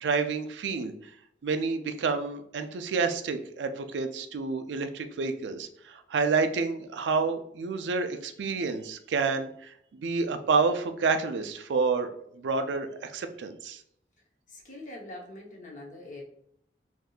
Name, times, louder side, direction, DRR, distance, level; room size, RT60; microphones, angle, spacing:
voice 1, 0.0-0.9 1.4-13.8, right 4 dB, 90° right, 8 dB, 0.4 m, -29 dB
voice 2, 14.5-16.2, left 1 dB, 45° left, -1 dB, 0.8 m, -43 dB
3.5 x 2.7 x 2.3 m, 0.70 s
head